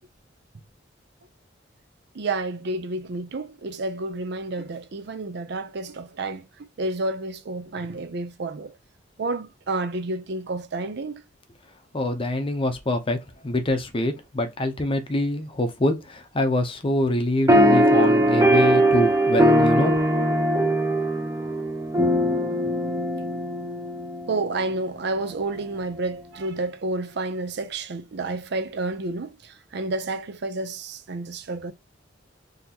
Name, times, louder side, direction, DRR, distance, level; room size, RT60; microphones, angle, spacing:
voice 1, 2.1-6.5 6.8-8.7 9.2-11.2 24.3-31.7, right 2 dB, 65° right, 0.5 m, -30 dB
voice 2, 11.9-20.0, left 1 dB, 30° left, 0.7 m, -25 dB
sound 1, 17.5-24.4, right 1 dB, 15° right, 0.7 m, -20 dB
3.9 x 2.9 x 2.8 m
head